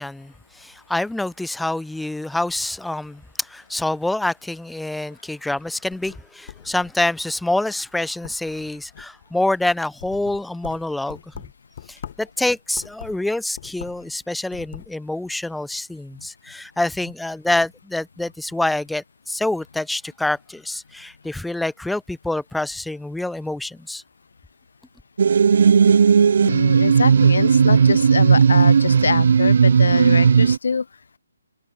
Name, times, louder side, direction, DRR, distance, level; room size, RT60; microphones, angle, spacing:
voice 1, 0.0-11.2 11.9-24.0, left 2 dB, ahead, 0.4 m, -26 dB
sound 1, 5.7-7.3 7.7-7.9 8.2-9.3 9.7-12.3 12.7-14.1 14.4-14.9, left 10 dB, 45° left, 2.4 m, -41 dB
sound 2, 25.2-30.6, right 6 dB, 60° right, 0.3 m, -15 dB
voice 2, 26.4-31.0, left 5 dB, 75° left, 0.6 m, -24 dB
hypercardioid pair, 155°, 0 cm